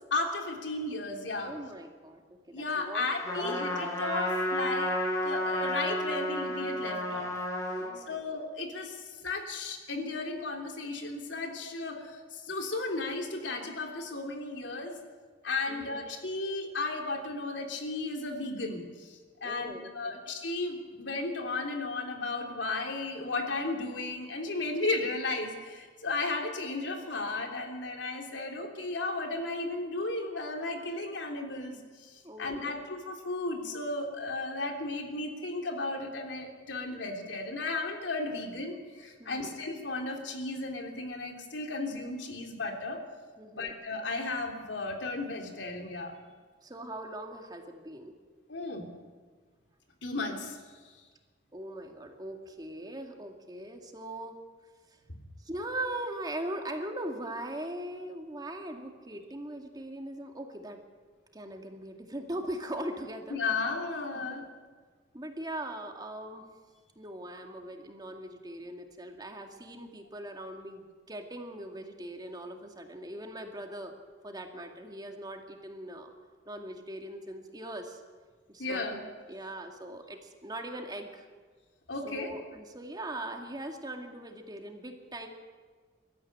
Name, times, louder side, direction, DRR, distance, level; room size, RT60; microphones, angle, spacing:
voice 1, 0.1-1.5 2.5-4.9 5.2-7.4 8.0-15.0 15.4-43.0 43.5-46.1 48.5-48.9 50.0-50.6 55.1-55.2 63.3-64.4 78.6-79.0 81.9-82.3, left 3 dB, 80° left, 3 dB, 3.3 m, -34 dB
voice 2, 1.4-3.7 7.8-8.2 15.7-16.0 19.4-20.2 32.2-32.8 39.2-39.5 43.4-43.7 46.6-48.1 51.5-54.4 55.4-60.8 61.3-63.4 64.1-64.4 65.1-66.4 67.0-73.9 74.2-76.1 76.5-78.0 78.5-79.0 79.3-81.3 82.0-85.3, right 1 dB, 25° right, 3 dB, 2.2 m, -40 dB
Trumpet, 3.3-7.9, left 1 dB, 15° left, 5.2 m, -31 dB
23.0 x 13.5 x 10.0 m, 1.5 s
head